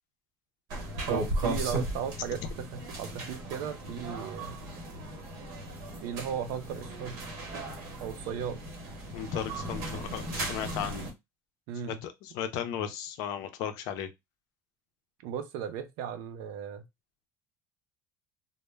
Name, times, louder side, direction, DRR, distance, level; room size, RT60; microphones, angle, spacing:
sound 1, 0.7-11.1, right 1 dB, 65° right, 0.9 m, -36 dB
voice 1, 1.1-4.6 6.0-7.3 8.0-8.6 11.7-12.0 15.2-16.9, right 8 dB, 80° right, 0.5 m, -36 dB
voice 2, 9.1-11.1 11.9-14.1, left 9 dB, 70° left, 0.5 m, -35 dB
2.1 x 2.0 x 3.2 m
cardioid pair, 150°, 7 cm